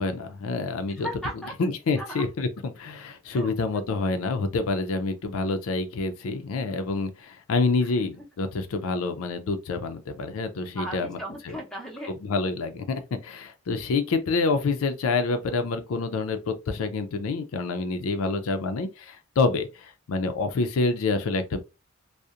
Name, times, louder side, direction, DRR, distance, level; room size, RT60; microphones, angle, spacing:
voice 1, 0.0-1.1 1.6-11.2 11.5-11.6 12.2-21.6, left 3 dB, 75° left, 0.4 m, -27 dB
voice 2, 1.0-1.7 2.0-2.2 3.3-3.5 10.6-12.1, right 1 dB, 5° left, 0.6 m, -36 dB
2.7 x 2.0 x 2.4 m
head